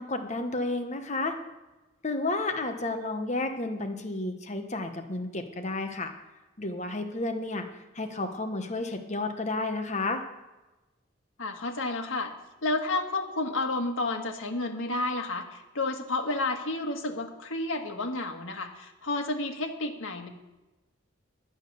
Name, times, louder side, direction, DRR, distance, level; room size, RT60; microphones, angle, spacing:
voice 1, 0.0-1.3 2.0-6.1 6.6-7.7 7.9-10.2, left 2 dB, 35° left, 6 dB, 1.2 m, -31 dB
voice 2, 11.4-12.3 12.6-20.3, left 2 dB, 85° left, 3 dB, 1.7 m, -31 dB
11.5 x 9.0 x 6.9 m, 1.1 s
head